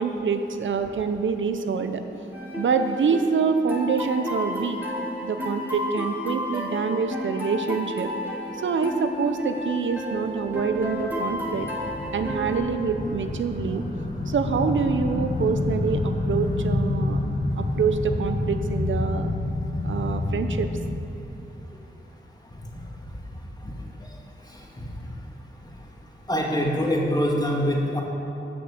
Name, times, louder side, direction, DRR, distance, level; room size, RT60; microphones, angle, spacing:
voice 1, 0.0-2.0 2.6-4.8 5.2-8.1 8.6-11.7 12.1-13.8 14.3-17.2 17.6-19.3 19.8-20.8, right 5 dB, 90° right, 7 dB, 0.7 m, -26 dB
sound 1, 2.3-12.6, left 1 dB, 10° right, 2.1 m, -32 dB
sound 2, 10.2-21.0, left 2 dB, 45° left, 1.5 m, -28 dB
voice 2, 26.3-28.0, equal, 20° left, -1 dB, 2.0 m, -24 dB
14.5 x 6.1 x 7.1 m, 2.8 s
wide cardioid pair, 85°, 19 cm